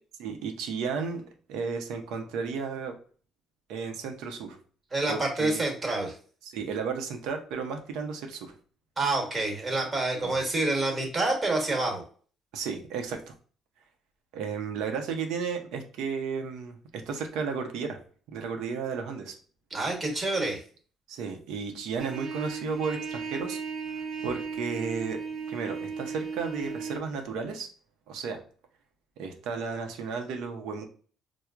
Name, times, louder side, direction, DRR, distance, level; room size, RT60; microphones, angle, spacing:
voice 1, 0.2-1.2 1.5-2.9 3.7-4.6 5.1-5.6 6.4-8.5 10.2-10.4 12.5-13.3 14.3-16.8 17.1-18.0 18.3-19.4 21.1-23.6 23.9-25.2 25.5-27.7 28.1-28.4 29.2-30.8, right 5 dB, 85° right, 5 dB, 0.6 m, -33 dB
voice 2, 4.9-6.1 9.0-12.0 19.7-20.6, right 2 dB, 25° right, 2 dB, 1.1 m, -27 dB
Trumpet, 22.0-27.0, right 5 dB, 40° right, 0.5 m, -36 dB
4.4 x 2.0 x 2.3 m, 0.43 s
cardioid pair, 110°, 0 cm